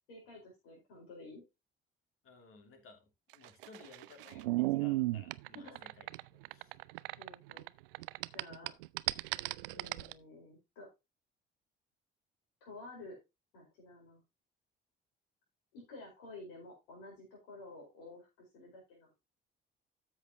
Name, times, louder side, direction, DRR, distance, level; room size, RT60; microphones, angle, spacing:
voice 1, 0.1-1.4 5.5-5.8 7.2-7.7 8.3-8.7 9.7-10.9 12.6-13.2 13.5-14.2 15.7-19.1, left 2 dB, 65° left, -2 dB, 4.6 m, -51 dB
voice 2, 2.2-6.1 6.3-6.7, left 4 dB, 50° left, 4 dB, 2.9 m, -58 dB
sound 1, 3.3-7.7 7.9-10.1, right 20 dB, 70° right, 0.4 m, -35 dB
13.0 x 6.6 x 2.9 m, 0.24 s
figure-of-eight pair, 45°, 29 cm